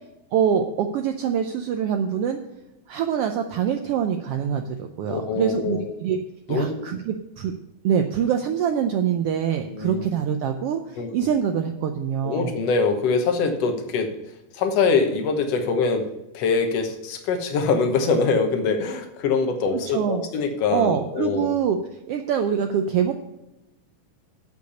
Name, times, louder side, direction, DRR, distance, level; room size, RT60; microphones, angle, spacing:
voice 1, 0.3-2.4 2.9-6.2 6.5-7.5 7.8-12.5 19.9-20.2 20.7-21.8 22.1-23.1, right 8 dB, 85° right, 5 dB, 1.3 m, -24 dB
voice 2, 5.1-5.9 6.5-6.9 9.7-10.1 11.0-11.1 12.2-14.1 14.5-16.1 16.3-21.5, left 4 dB, 65° left, 6 dB, 2.0 m, -23 dB
8.4 x 6.6 x 8.1 m, 0.95 s
omnidirectional pair, 3.5 m